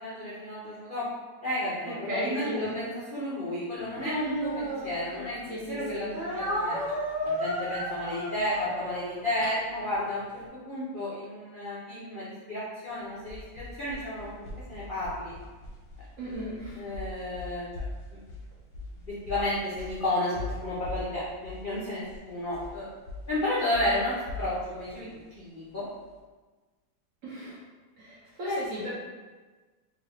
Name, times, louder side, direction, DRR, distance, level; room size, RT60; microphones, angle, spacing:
voice 1, 0.0-1.1 1.4-6.8 7.2-10.3 10.5-15.3 16.3-16.4 16.7-17.7 19.3-22.8 23.3-24.1 24.4-25.1 25.4-25.8 28.4-28.6, left 1 dB, 85° left, -9 dB, 0.4 m, -32 dB
voice 2, 1.9-2.7 5.5-6.1 16.2-16.8 27.2-27.6 28.0-28.9, left 1 dB, 60° right, -6 dB, 0.9 m, -35 dB
Speech, 3.9-5.5 6.1-10.2, equal, 15° right, 1.0 m, -33 dB
sound 1, 12.9-26.2, left 2 dB, 65° left, 1.0 m, -42 dB
3.6 x 2.7 x 3.4 m, 1.3 s
omnidirectional pair, 2.1 m